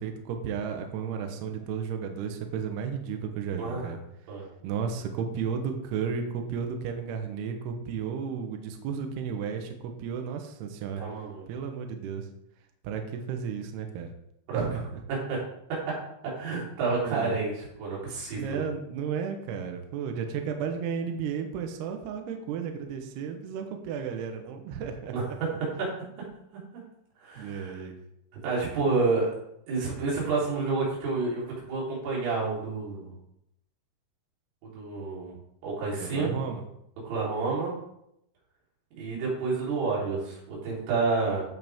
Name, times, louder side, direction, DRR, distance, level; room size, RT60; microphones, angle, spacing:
voice 1, 0.0-4.0 4.6-11.0 11.5-12.3 12.8-14.1 14.5-15.0 16.9-17.4 18.3-25.1 27.4-27.9 36.0-36.6, right 6 dB, 70° right, 5 dB, 2.7 m, -33 dB
voice 2, 3.6-3.9 4.3-4.5 11.0-11.4 14.5-14.7 15.1-15.4 15.9-16.0 16.3-18.6 25.1-25.3 25.8-25.9 27.2-27.8 28.4-29.3 29.7-33.1 34.7-35.3 35.6-36.3 37.0-37.7 38.9-41.4, right 4 dB, 85° right, -5 dB, 6.4 m, -29 dB
16.0 x 6.6 x 3.6 m, 0.78 s
omnidirectional pair, 5.6 m